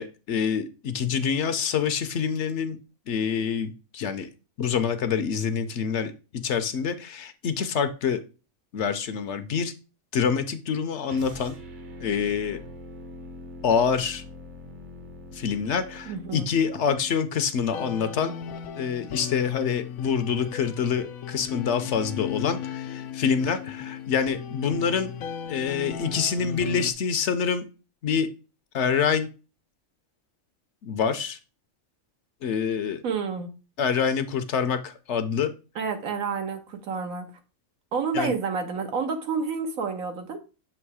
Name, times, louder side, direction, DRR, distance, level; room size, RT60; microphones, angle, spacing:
voice 1, 0.0-2.8 3.1-4.3 4.6-6.1 6.4-8.2 8.7-9.7 10.1-11.5 12.0-12.6 13.6-14.2 15.3-18.3 18.8-25.1 25.5-27.6 28.0-28.3 28.7-29.3 30.8-31.4 32.4-33.0 33.8-35.5 38.1-38.3, left 6 dB, 65° left, 0.9 m, -26 dB
sound 1, 11.0-17.2, left 1 dB, 45° right, 0.8 m, -43 dB
voice 2, 16.1-16.5 33.0-33.5 35.7-37.3 37.9-40.4, right 5 dB, 85° right, 1.5 m, -29 dB
sound 2, 17.7-26.9, left 8 dB, 90° left, 1.0 m, -36 dB
7.1 x 3.0 x 4.7 m
omnidirectional pair, 1.4 m